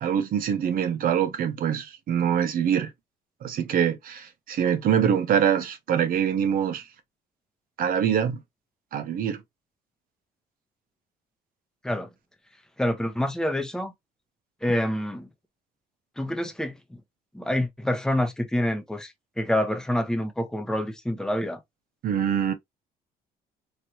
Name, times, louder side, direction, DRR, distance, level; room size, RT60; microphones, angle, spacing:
voice 1, 0.0-2.9 3.4-6.9 7.8-8.4 8.9-9.4 22.0-22.5, right 8 dB, 60° right, 0.8 m, -24 dB
voice 2, 12.8-13.9 14.6-15.3 16.2-17.0 17.3-21.6, left 1 dB, 5° left, 0.8 m, -27 dB
3.2 x 2.9 x 2.8 m
cardioid pair, 110°, 17 cm